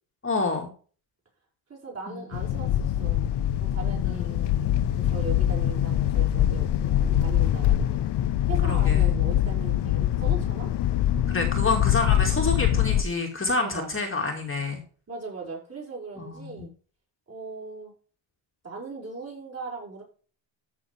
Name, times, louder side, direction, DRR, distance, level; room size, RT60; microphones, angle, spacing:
voice 1, 0.2-0.7 2.1-2.6 4.0-4.2 8.6-9.1 11.3-14.8 16.2-16.7, left 3 dB, 25° left, 2 dB, 2.3 m, -28 dB
voice 2, 1.7-3.3 3.6-4.5 4.9-8.1 8.5-10.7 13.6-13.9 15.1-16.7 17.3-17.9 18.6-20.0, right 3 dB, 30° right, -3 dB, 6.2 m, -39 dB
sound 1, 2.3-13.0, left 11 dB, 55° left, 0.8 m, -24 dB
13.5 x 6.8 x 3.5 m, 0.39 s
cardioid pair, 120°, 48 cm